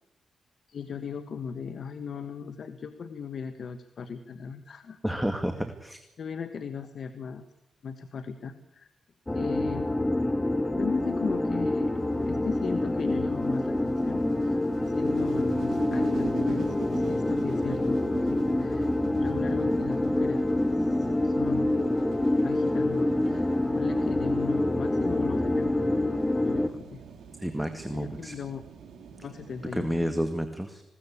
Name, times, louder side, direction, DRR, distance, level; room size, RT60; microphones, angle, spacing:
voice 1, 0.7-5.0 6.2-7.5 7.8-8.9 9.3-9.9 10.8-11.9 12.3-14.6 14.9-21.7 22.4-25.7 26.4-27.0 27.9-28.6 29.1-29.9, left 6 dB, 65° left, 10 dB, 1.4 m, -37 dB
voice 2, 5.0-6.0 27.4-28.3 29.7-30.8, equal, 5° right, 8 dB, 2.2 m, -30 dB
sound 1, 9.3-26.7, left 1 dB, 20° left, 1.7 m, -26 dB
sound 2, 11.0-30.0, right 6 dB, 70° right, 3.8 m, -44 dB
20.5 x 17.5 x 8.5 m, 0.87 s
supercardioid pair, 50°, 0 cm